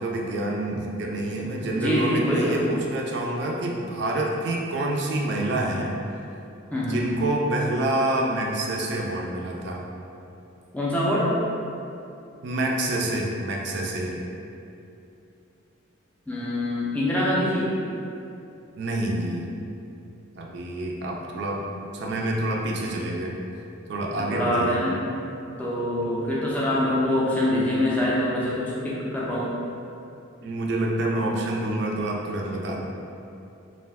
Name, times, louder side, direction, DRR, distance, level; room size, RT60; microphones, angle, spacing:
voice 1, 0.0-5.9 6.8-9.8 12.4-14.2 18.8-19.5 20.4-21.7 21.9-23.4 23.9-24.8 26.0-26.1 30.4-32.8, right 1 dB, 55° right, -1 dB, 0.4 m, -27 dB
voice 2, 1.7-2.5 6.7-7.1 10.7-11.3 16.3-17.7 24.3-25.0 25.6-29.5, left 1 dB, 5° left, -7 dB, 0.4 m, -24 dB
2.4 x 2.2 x 3.4 m, 2.7 s
head